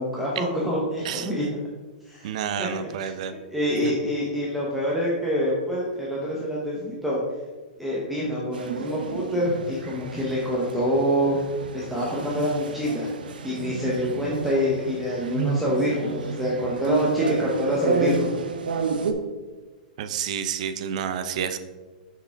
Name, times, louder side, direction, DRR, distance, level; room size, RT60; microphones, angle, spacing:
voice 1, 0.0-1.6 2.1-2.3 2.6-3.1 3.5-7.2 7.8-11.4 11.7-13.1 13.4-18.4, equal, ahead, -6 dB, 0.9 m, -26 dB
voice 2, 2.2-3.4 15.3-15.6 20.0-21.6, right 8 dB, 50° right, 10 dB, 0.6 m, -29 dB
sound 1, 8.5-19.1, right 4 dB, 85° right, 0.8 m, -31 dB
7.0 x 4.7 x 4.6 m, 1.3 s
hypercardioid pair, 160°, 5 cm